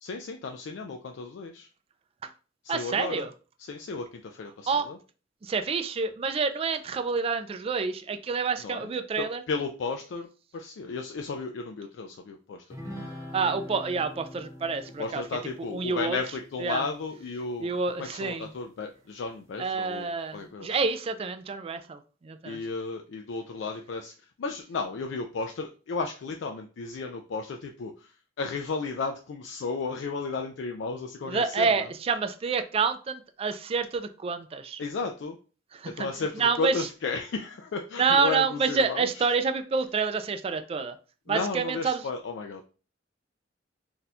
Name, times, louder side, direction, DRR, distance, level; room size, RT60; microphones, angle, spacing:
voice 1, 0.0-1.7 2.6-3.3 3.6-5.0 8.6-8.9 9.2-10.3 10.5-12.6 15.0-17.7 18.0-20.7 22.4-31.9 34.8-35.4 35.8-39.2 41.3-42.7, left 4 dB, 65° left, 0.3 m, -34 dB
voice 2, 2.7-3.3 4.7-4.9 5.4-9.4 13.3-15.2 15.7-16.2 16.6-16.8 17.6-18.5 19.6-22.6 31.3-34.8 35.7-36.1 36.4-36.9 38.0-41.0 41.3-42.1, right 5 dB, 30° right, 0.3 m, -28 dB
sound 1, 12.7-18.4, equal, 15° right, 0.8 m, -45 dB
2.7 x 2.3 x 4.1 m
head